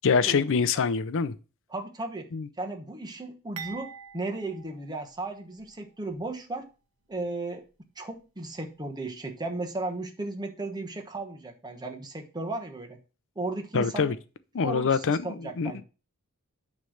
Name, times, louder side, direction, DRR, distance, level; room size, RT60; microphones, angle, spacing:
voice 1, 0.0-1.3 2.3-2.5 13.7-14.1 14.5-15.8, left 5 dB, 60° left, 0.5 m, -25 dB
voice 2, 1.7-2.3 2.6-6.6 7.1-7.6 8.0-13.0 13.3-14.1 14.6-15.8, right 2 dB, 20° right, 1.1 m, -35 dB
sound 1, 3.6-5.7 6.1-6.2 7.1-7.3, right 7 dB, 80° right, 1.2 m, -45 dB
9.4 x 3.2 x 6.4 m
head